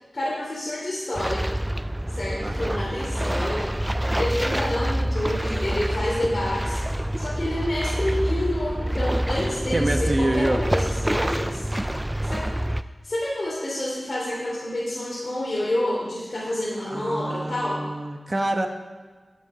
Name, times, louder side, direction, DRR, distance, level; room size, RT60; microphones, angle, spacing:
voice 1, 0.1-1.5 2.1-3.7 4.1-6.8 7.2-11.7 12.2-12.4 13.0-17.8, left 1 dB, 50° left, -7 dB, 3.1 m, -28 dB
sound 1, 1.1-12.8, right 1 dB, 10° right, 0.4 m, -27 dB
voice 2, 2.4-2.8 9.7-10.6 16.8-18.7, right 1 dB, 35° right, 4 dB, 1.1 m, -26 dB
12.0 x 8.1 x 5.0 m, 1.4 s
wide cardioid pair, 80°, 0 cm